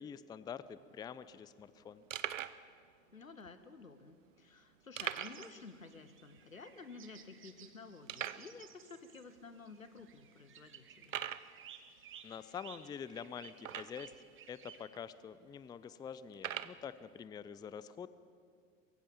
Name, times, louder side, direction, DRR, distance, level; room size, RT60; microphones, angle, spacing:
voice 1, 0.0-2.0 12.2-14.1 14.5-18.1, left 7 dB, 10° left, 16 dB, 0.4 m, -46 dB
sound 1, 0.6-0.7 0.9-1.1 1.6-1.7 2.1-2.6 3.4-3.5 5.0-5.5 5.8-5.9 6.4-6.5 7.1-7.2 8.1-8.5 9.3-9.4 10.0-10.1 11.0-11.5 13.6-14.2 14.9-15.0 16.3-16.8, right 10 dB, 75° right, 0.7 m, -41 dB
voice 2, 3.1-11.2, left 4 dB, 85° left, 11 dB, 1.1 m, -52 dB
sound 2, 5.1-14.8, right 8 dB, 30° right, 1.6 m, -57 dB
23.0 x 15.5 x 7.3 m, 2.2 s
figure-of-eight pair, 75°, 39 cm